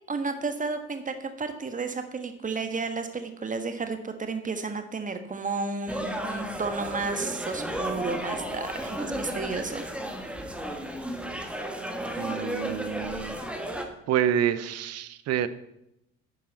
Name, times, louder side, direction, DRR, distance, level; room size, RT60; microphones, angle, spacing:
voice 1, 0.1-9.8, right 4 dB, 20° right, 7 dB, 1.4 m, -32 dB
sound 1, 5.9-13.8, right 1 dB, 5° right, 1.6 m, -33 dB
voice 2, 12.2-13.4 14.1-15.5, right 10 dB, 40° right, 14 dB, 0.8 m, -27 dB
10.5 x 9.3 x 4.1 m, 0.84 s
figure-of-eight pair, 60°, 38 cm